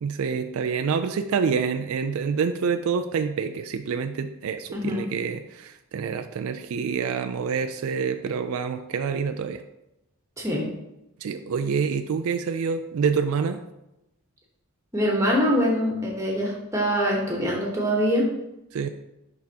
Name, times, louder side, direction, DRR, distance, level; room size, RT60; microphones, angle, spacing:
voice 1, 0.0-9.6 11.2-13.6 18.7-18.9, right 6 dB, 70° right, 8 dB, 0.3 m, -27 dB
voice 2, 4.7-5.0 10.4-10.7 14.9-18.3, equal, 15° right, -2 dB, 1.2 m, -24 dB
10.5 x 3.6 x 2.8 m, 0.90 s
head